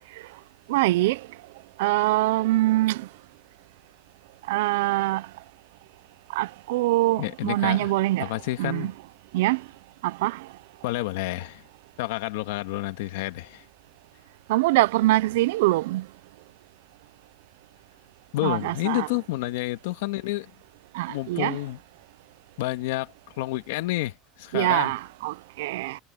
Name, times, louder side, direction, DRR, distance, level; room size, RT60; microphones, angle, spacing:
voice 1, 0.7-1.2 1.8-3.0 4.5-5.2 6.3-8.3 8.6-8.9 9.3-9.6 10.0-10.4 14.5-16.0 18.4-19.1 20.9-21.6 24.5-26.0, right 18 dB, 90° right, 0.6 m, -23 dB
voice 2, 7.2-7.9 8.2-8.9 10.8-11.6 12.0-13.6 18.3-20.5 21.1-21.8 22.6-24.9, left 18 dB, 90° left, 1.8 m, -29 dB
supercardioid pair, 140°, 0 cm